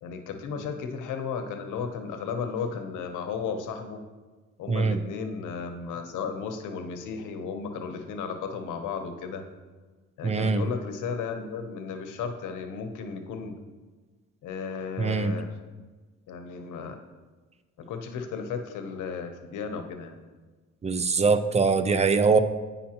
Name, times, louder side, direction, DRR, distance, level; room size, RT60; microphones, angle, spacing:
voice 1, 0.0-4.0 4.6-9.4 10.2-13.6 14.4-15.6 16.3-17.0 17.8-20.2, left 5 dB, 80° left, 6 dB, 0.8 m, -34 dB
voice 2, 4.7-5.0 10.2-10.6 15.0-15.3 20.8-22.4, right 4 dB, 20° right, 11 dB, 0.4 m, -22 dB
8.6 x 5.5 x 2.9 m, 1.3 s
cardioid pair, 90°, 30 cm